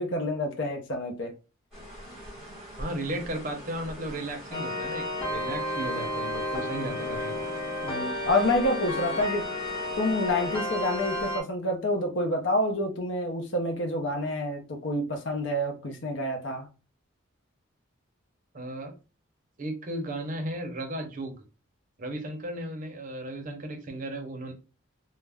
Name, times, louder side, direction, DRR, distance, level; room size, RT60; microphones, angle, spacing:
voice 1, 0.0-1.3 7.8-9.5 10.0-16.7, left 1 dB, 60° left, 0.6 m, -28 dB
sound 1, 1.7-11.4, equal, ahead, 1.2 m, -44 dB
voice 2, 2.8-7.3 18.5-18.9 19.6-21.4 22.0-24.5, right 1 dB, 40° right, 0.6 m, -35 dB
sound 2, 4.5-11.4, left 1 dB, 25° left, 1.1 m, -32 dB
2.4 x 2.1 x 3.3 m
head